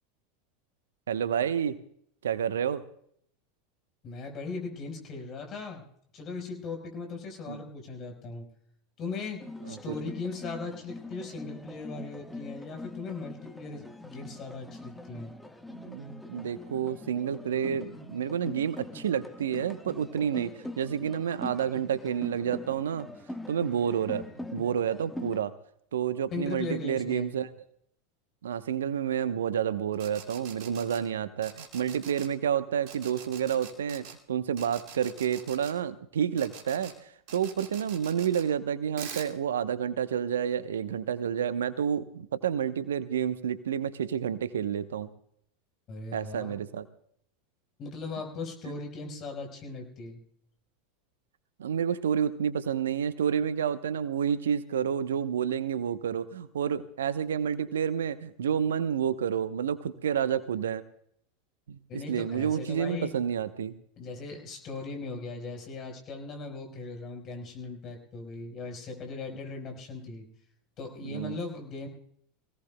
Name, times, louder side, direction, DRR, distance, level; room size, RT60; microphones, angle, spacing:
voice 1, 1.1-1.8 2.2-2.8 7.5-7.7 9.7-9.9 15.7-20.5 20.8-23.1 23.5-24.2 24.5-25.5 25.9-27.5 28.4-45.1 46.1-46.9 51.6-60.8 61.7-63.7 71.0-71.4, right 8 dB, 75° right, 13 dB, 0.9 m, -29 dB
voice 2, 4.0-5.8 6.1-8.4 9.0-9.4 9.7-15.3 26.3-27.3 45.9-46.6 47.8-50.2 61.9-63.2 64.0-70.3 70.8-71.9, left 3 dB, 40° left, 3 dB, 4.6 m, -38 dB
sound 1, 9.4-25.4, left 1 dB, 5° left, 1.4 m, -43 dB
sound 2, 29.9-31.0 31.4-32.3 32.9-34.1 34.6-35.7 36.4-36.9 37.3-38.4 39.0-39.3, right 7 dB, 55° right, 2.1 m, -44 dB
23.5 x 17.5 x 2.2 m, 0.66 s
figure-of-eight pair, 85°, 0 cm